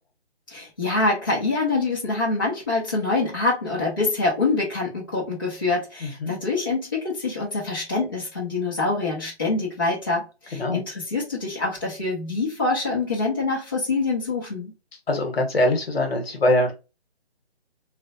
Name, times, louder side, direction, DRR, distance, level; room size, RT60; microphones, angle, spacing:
voice 1, 0.5-14.7, left 3 dB, 20° left, 0.5 m, -25 dB
voice 2, 6.0-6.3 10.5-10.8 15.1-16.7, left 1 dB, 65° left, 1.0 m, -22 dB
3.1 x 2.1 x 2.5 m
figure-of-eight pair, 160°, 33 cm